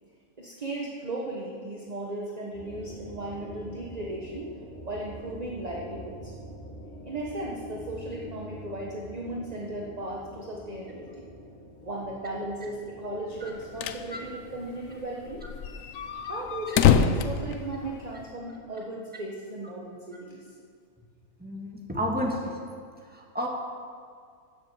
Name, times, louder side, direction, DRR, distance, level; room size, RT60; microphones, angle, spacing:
voice 1, 0.4-4.5 4.8-6.3 7.0-11.3 11.8-15.4 16.3-20.4, right 1 dB, 30° right, -2 dB, 1.3 m, -36 dB
sound 1, 2.5-16.8, equal, 35° left, 3.3 m, -46 dB
sound 2, 13.4-14.1 14.4-14.5 14.7-14.8 15.3-18.3, left 7 dB, 70° left, 1.0 m, -25 dB
voice 2, 21.4-22.5 23.1-23.5, equal, 5° right, -2 dB, 2.1 m, -31 dB
16.0 x 7.6 x 7.3 m, 2.1 s
omnidirectional pair, 1.5 m